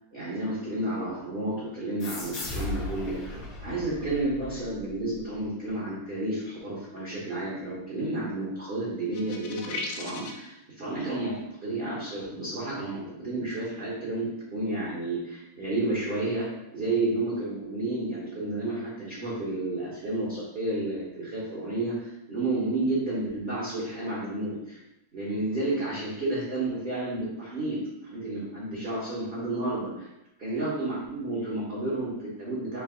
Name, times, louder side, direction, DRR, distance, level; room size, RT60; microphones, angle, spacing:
voice 1, 0.1-24.8 25.1-30.1 30.4-32.8, right 2 dB, 45° right, -7 dB, 0.8 m, -31 dB
sound 1, 2.0-5.2, left 2 dB, 55° left, 1.0 m, -37 dB
sound 2, 9.1-10.5, left 3 dB, 85° left, 1.5 m, -36 dB
3.9 x 2.7 x 3.7 m, 0.91 s
omnidirectional pair, 2.3 m